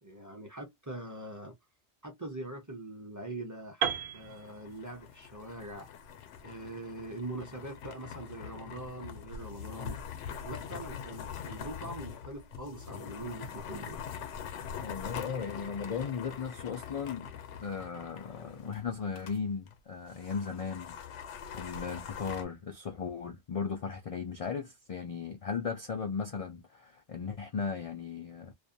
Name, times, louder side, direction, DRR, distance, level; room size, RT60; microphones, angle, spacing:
voice 1, 0.0-1.5 2.0-5.9 6.4-10.0 10.4-14.0, right 1 dB, 20° right, 0.5 m, -43 dB
Piano, 3.8-7.7, right 8 dB, 60° right, 0.7 m, -37 dB
sound 1, 4.2-19.4 19.7-19.8 20.1-22.4, left 7 dB, 90° left, 0.9 m, -43 dB
voice 2, 14.8-17.3 17.6-21.0 21.5-28.5, left 6 dB, 65° left, 0.3 m, -36 dB
2.5 x 2.1 x 2.6 m
omnidirectional pair, 1.2 m